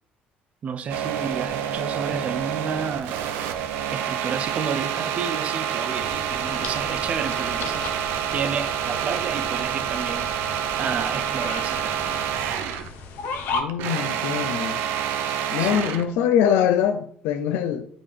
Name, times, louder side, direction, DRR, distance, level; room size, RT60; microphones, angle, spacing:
voice 1, 0.6-3.2 3.9-10.3 10.8-12.2 15.6-16.0, right 6 dB, 40° right, 0.5 m, -31 dB
sound 1, 0.9-12.9 13.2-16.1, right 9 dB, 85° right, 0.6 m, -28 dB
sound 2, 5.9-13.6, left 4 dB, 65° left, 0.8 m, -36 dB
voice 2, 13.5-14.8 15.5-17.9, left 9 dB, 90° left, 0.4 m, -23 dB
8.6 x 3.7 x 3.3 m
cardioid pair, 145°, 4 cm